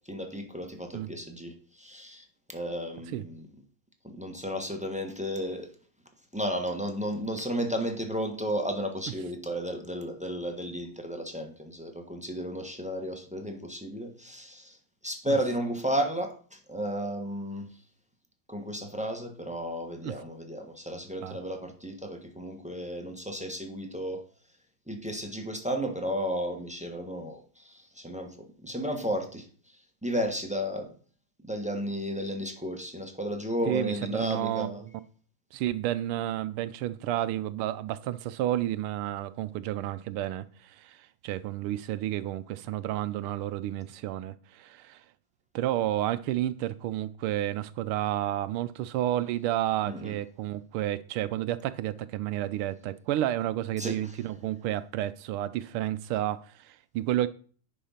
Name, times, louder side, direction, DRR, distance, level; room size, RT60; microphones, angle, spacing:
voice 1, 0.0-2.3 2.5-3.5 4.0-5.7 6.3-14.8 15.0-17.7 18.5-24.2 24.9-29.5 30.0-30.9 31.4-34.8 49.9-50.2 53.8-54.1, equal, 5° right, 0.7 m, -33 dB
voice 2, 33.7-34.8 35.5-45.0 45.5-57.3, right 13 dB, 80° right, 1.5 m, -31 dB
10.0 x 4.8 x 5.7 m
omnidirectional pair, 2.4 m